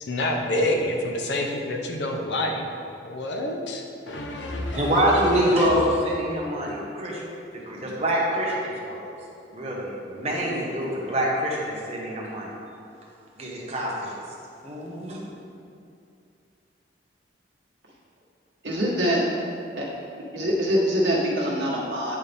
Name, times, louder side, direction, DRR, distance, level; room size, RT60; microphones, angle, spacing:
voice 1, 0.0-2.6 3.0-5.7, left 1 dB, 70° left, 1 dB, 0.7 m, -28 dB
voice 2, 4.7-7.2 7.5-9.1 9.5-12.5 13.4-14.1 14.6-15.2, equal, 35° right, -4 dB, 1.2 m, -25 dB
voice 3, 18.6-19.2 19.8-19.9 20.3-22.2, equal, 80° right, -5 dB, 1.5 m, -24 dB
9.3 x 4.1 x 3.5 m, 2.5 s
head